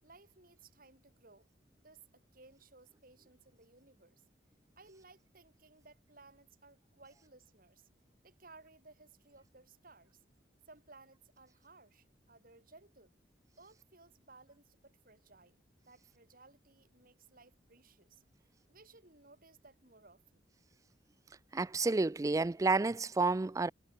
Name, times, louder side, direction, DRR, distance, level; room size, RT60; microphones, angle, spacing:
voice 1, 0.0-1.5 1.7-4.2 4.8-7.9 8.2-10.2 10.7-13.1 13.6-15.6 15.9-18.2 18.7-20.4, right 3 dB, 50° right, 6.3 m, -60 dB
voice 2, 21.5-23.7, right 3 dB, 20° right, 0.3 m, -30 dB
head